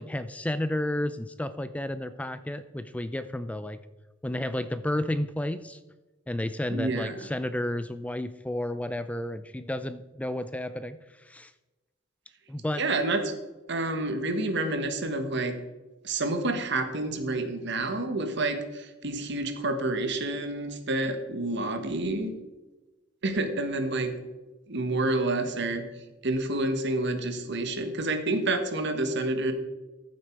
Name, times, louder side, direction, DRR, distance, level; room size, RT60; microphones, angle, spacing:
voice 1, 0.0-3.8 4.2-5.8 6.3-11.5 12.5-12.8, left 1 dB, 5° left, 12 dB, 0.4 m, -32 dB
voice 2, 6.7-7.2 12.8-13.3 13.7-15.6 16.0-22.3 23.2-24.1 24.7-25.9 26.2-29.5, right 2 dB, 60° right, 7 dB, 1.5 m, -28 dB
14.0 x 7.5 x 4.6 m, 1.1 s
head